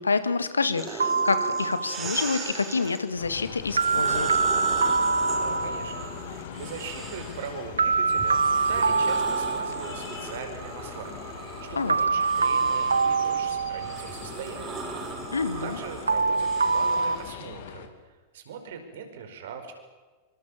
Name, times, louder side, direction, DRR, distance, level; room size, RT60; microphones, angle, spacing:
voice 1, 0.0-4.3 11.8-12.0 15.3-15.8, left 4 dB, 75° left, 12 dB, 1.8 m, -27 dB
sound 1, 0.7-3.0 3.6-7.7 8.2-17.3, right 4 dB, 25° right, 6.0 m, -38 dB
sound 2, 1.0-2.1 3.8-6.1 7.8-10.1 11.9-14.2 16.1-17.1, right 4 dB, 75° right, 0.8 m, -25 dB
sound 3, 3.2-17.9, left 9 dB, 55° left, 2.7 m, -41 dB
voice 2, 5.3-14.8 15.6-19.7, right 6 dB, 60° right, 6 dB, 5.3 m, -40 dB
26.0 x 25.0 x 7.3 m, 1.3 s
figure-of-eight pair, 90°, 0 cm